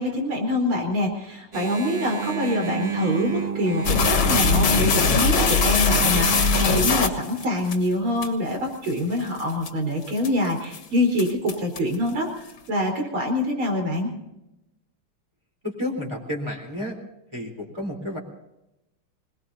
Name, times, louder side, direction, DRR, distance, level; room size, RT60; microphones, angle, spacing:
voice 1, 0.0-14.1, left 1 dB, 75° right, 2 dB, 5.3 m, -25 dB
Engine, 1.5-7.1, right 7 dB, 35° right, 0.6 m, -30 dB
sound 1, 3.9-7.8 8.2-8.3 8.9-9.0 9.4-9.7 10.2-10.5 10.7-10.8 11.2-12.0, left 5 dB, 70° left, 2.3 m, -21 dB
voice 2, 15.6-17.0 17.3-18.2, left 1 dB, 10° right, -1 dB, 3.9 m, -31 dB
26.5 x 19.5 x 2.8 m, 0.89 s
omnidirectional pair, 2.4 m